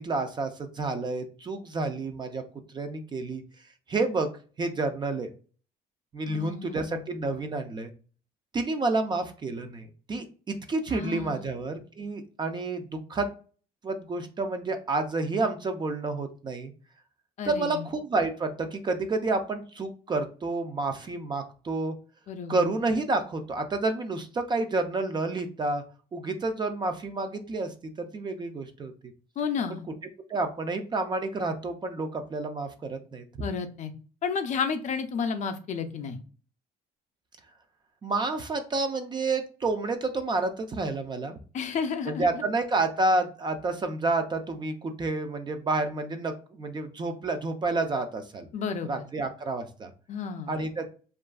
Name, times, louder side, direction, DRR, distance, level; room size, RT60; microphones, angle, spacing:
voice 1, 0.0-2.4 2.7-3.4 3.9-4.3 4.6-5.3 6.1-7.9 8.5-13.3 13.8-16.7 17.4-21.9 22.5-25.8 26.1-28.9 29.7-29.8 30.3-33.2 38.0-41.4 42.1-48.5 48.8-49.9 50.5-50.9, right 3 dB, 25° right, 7 dB, 0.3 m, -29 dB
voice 2, 6.3-7.0 10.9-11.4 17.4-17.9 22.3-22.7 29.4-29.8 33.4-33.9 34.2-36.2 41.5-42.3 48.5-49.0 50.1-50.6, left 6 dB, 45° left, 7 dB, 0.4 m, -32 dB
2.6 x 2.4 x 2.3 m, 0.39 s
cardioid pair, 110°, 17 cm